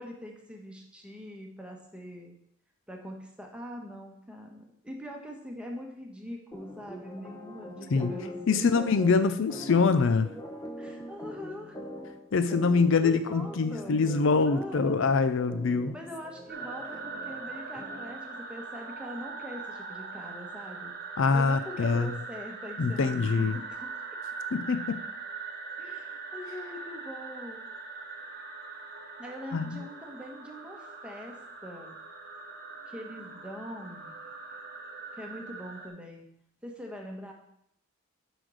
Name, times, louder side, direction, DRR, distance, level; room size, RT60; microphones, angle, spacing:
voice 1, 0.0-2.3 2.9-8.9 10.8-11.8 12.9-14.1 14.4-15.2 15.9-20.9 21.3-24.0 25.8-27.6 29.2-32.0 32.9-34.2 35.1-36.3 36.6-37.3, equal, 5° right, 1 dB, 1.3 m, -43 dB
sound 1, 6.5-18.3, equal, 15° left, 1.0 m, -43 dB
voice 2, 8.5-10.3 12.3-15.9 21.2-22.2 22.8-23.6 24.5-25.0 29.5-29.7, left 4 dB, 60° left, 11 dB, 0.5 m, -24 dB
sound 2, 16.5-35.9, right 4 dB, 45° right, 1.2 m, -41 dB
7.5 x 5.1 x 6.4 m, 0.73 s
head